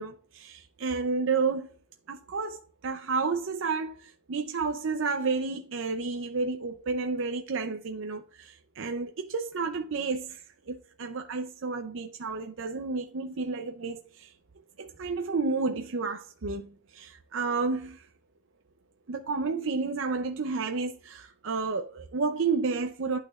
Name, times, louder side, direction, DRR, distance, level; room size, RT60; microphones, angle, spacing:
voice 1, 0.0-1.8 2.1-14.3 14.8-18.1 19.1-23.2, right 4 dB, 55° right, 0.5 m, -31 dB
11.5 x 4.1 x 2.3 m
head